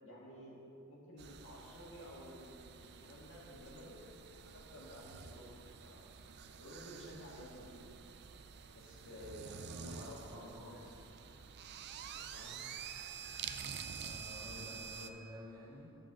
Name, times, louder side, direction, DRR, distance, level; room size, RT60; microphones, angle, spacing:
voice 1, 0.0-0.6 0.9-4.0 4.5-6.0 6.6-8.1 8.7-10.8 11.1-11.3 12.3-12.6, equal, 65° left, -4 dB, 1.7 m, -53 dB
sound 1, 1.2-15.1, right 7 dB, 50° right, 0.4 m, -49 dB
voice 2, 9.6-10.9 14.0-15.9, left 1 dB, 15° right, -8 dB, 2.1 m, -51 dB
8.6 x 4.5 x 7.3 m, 2.8 s
head